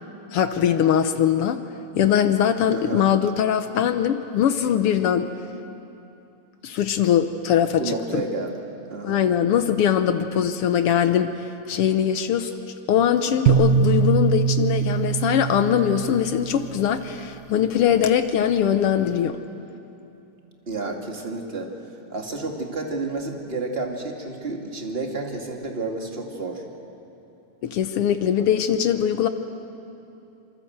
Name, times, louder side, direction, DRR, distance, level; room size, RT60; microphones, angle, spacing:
voice 1, 0.3-1.6 1.9-5.3 6.6-8.2 9.0-11.3 11.7-12.5 12.9-19.4 27.6-29.3, left 9 dB, 75° left, 9 dB, 1.3 m, -21 dB
voice 2, 2.7-3.1 7.7-9.3 20.6-21.7 22.1-26.6, right 3 dB, 20° right, 1 dB, 2.2 m, -30 dB
sound 1, 13.5-16.7, right 6 dB, 80° right, 2.8 m, -22 dB
26.5 x 24.5 x 8.0 m, 2.8 s
omnidirectional pair, 3.6 m